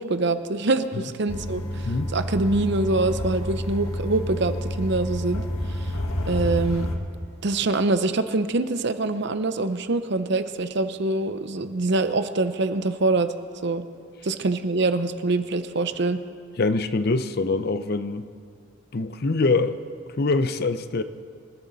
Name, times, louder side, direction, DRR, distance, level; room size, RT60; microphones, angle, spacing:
voice 1, 0.0-5.4 5.7-5.9 6.3-6.9 7.4-13.3 13.6-13.8 14.2-16.2, right 2 dB, 55° right, 11 dB, 0.7 m, -24 dB
sound 1, 1.3-7.0, equal, 90° left, 1.6 m, -29 dB
voice 2, 16.6-18.3 18.9-19.8 20.2-21.0, left 3 dB, 45° left, 11 dB, 0.6 m, -24 dB
26.0 x 12.5 x 4.0 m, 2.2 s
head